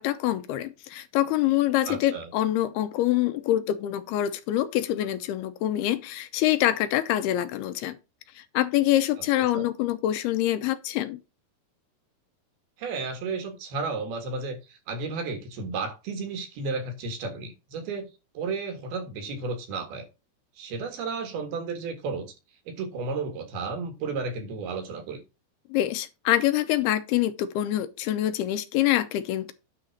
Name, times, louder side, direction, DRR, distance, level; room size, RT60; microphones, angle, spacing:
voice 1, 0.0-8.0 8.4-11.2 25.7-29.5, left 13 dB, 80° left, 2.6 m, -25 dB
voice 2, 1.9-2.3 9.5-9.6 12.8-18.1 18.4-20.1 20.6-22.3 22.7-25.2, right 4 dB, 70° right, 3.6 m, -33 dB
10.0 x 3.9 x 6.4 m
omnidirectional pair, 4.7 m